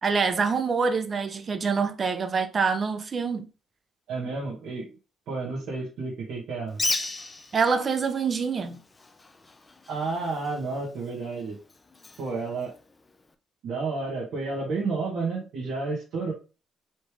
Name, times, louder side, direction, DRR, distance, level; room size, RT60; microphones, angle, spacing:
voice 1, 0.0-3.5 7.5-8.8, right 5 dB, 40° right, 0.8 m, -25 dB
voice 2, 4.1-5.0 5.3-7.1 9.9-11.6 12.2-12.7 13.6-16.3, right 3 dB, 75° right, 1.6 m, -31 dB
Bird, 6.7-13.3, left 2 dB, 25° left, 0.6 m, -37 dB
4.2 x 3.4 x 3.1 m
cardioid pair, 90°, 0 cm